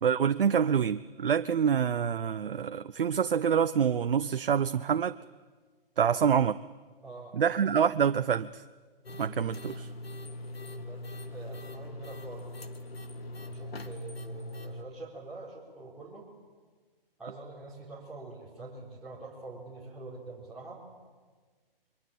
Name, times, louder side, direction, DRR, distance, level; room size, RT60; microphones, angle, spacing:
voice 1, 0.0-5.2 6.0-6.5 7.3-8.6 9.2-9.9, right 7 dB, 65° right, 12 dB, 0.8 m, -26 dB
voice 2, 7.0-7.4 10.5-12.5 13.4-16.3 17.2-20.8, right 3 dB, ahead, -10 dB, 4.2 m, -45 dB
sound 1, 9.0-14.8, left 1 dB, 85° left, 2.1 m, -41 dB
27.0 x 23.0 x 8.6 m, 1.4 s
hypercardioid pair, 145°, 29 cm